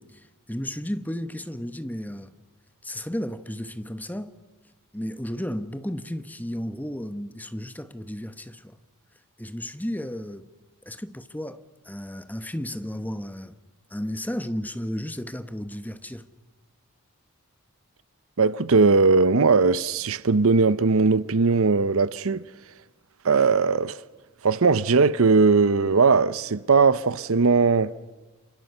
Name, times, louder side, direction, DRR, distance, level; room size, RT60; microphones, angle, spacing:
voice 1, 0.0-2.3 2.8-4.3 4.9-8.8 9.4-10.5 10.8-13.6 13.9-16.3, equal, 10° left, 1.1 m, -33 dB
voice 2, 18.4-22.4 23.2-24.0 24.4-27.9, right 4 dB, 70° right, 0.8 m, -19 dB
29.5 x 27.0 x 6.8 m
head